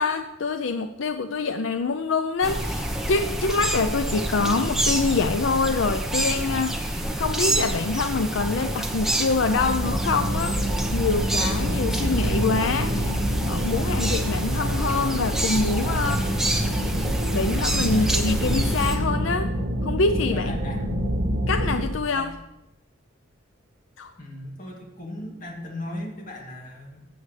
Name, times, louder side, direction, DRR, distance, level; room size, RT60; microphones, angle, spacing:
voice 1, 0.0-13.2 13.5-16.4 17.3-19.5 19.8-20.5 21.5-22.3 24.0-24.1, left 4 dB, 75° left, 8 dB, 0.5 m, -25 dB
sound 1, 2.4-19.0, right 1 dB, ahead, 0.9 m, -28 dB
sound 2, 9.4-21.9, equal, 65° right, 1.3 m, -27 dB
voice 2, 20.3-20.9 22.1-22.3 24.2-27.1, left 1 dB, 40° left, -1 dB, 2.2 m, -37 dB
18.0 x 7.9 x 3.3 m, 0.91 s
head